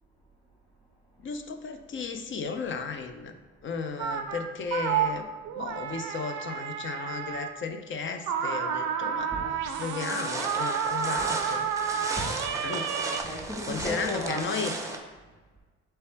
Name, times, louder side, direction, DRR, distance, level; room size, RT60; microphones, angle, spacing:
voice 1, 1.2-3.3 3.6-5.3 5.6-9.3 9.8-12.1 12.6-12.9 13.7-14.7, left 5 dB, 40° left, 7 dB, 0.5 m, -34 dB
sound 1, 4.0-4.4 4.7-7.5 8.3-13.2, right 7 dB, 80° right, 0.5 m, -30 dB
voice 2, 9.1-9.6 10.9-11.3 11.9-12.5 13.0-14.6, equal, 10° left, -8 dB, 1.2 m, -38 dB
sound 2, 10.0-15.0, right 2 dB, 10° right, 0.5 m, -36 dB
3.3 x 3.3 x 4.4 m, 1.3 s
cardioid pair, 90°, 30 cm